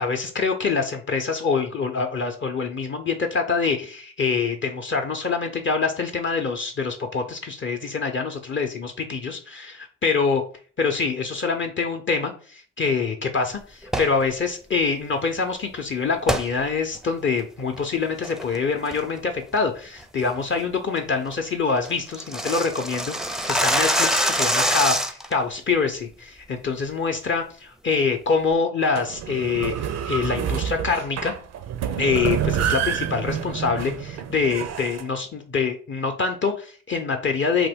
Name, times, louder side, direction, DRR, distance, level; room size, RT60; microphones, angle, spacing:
voice 1, 0.0-10.4 10.8-31.3 32.0-37.7, left 4 dB, 40° left, 4 dB, 0.6 m, -25 dB
sound 1, 13.8-14.2 16.3-16.5 17.0-17.1 17.6-17.8 18.2-18.6 18.9-19.2 19.5-19.6 20.0-20.3 20.6-20.7 21.0-21.1 21.3-21.4 21.7-25.3, equal, ahead, 0.4 m, -24 dB
sound 2, 28.8-35.0, right 9 dB, 60° right, 0.4 m, -28 dB
2.9 x 2.2 x 3.5 m, 0.42 s
supercardioid pair, 45°, 30 cm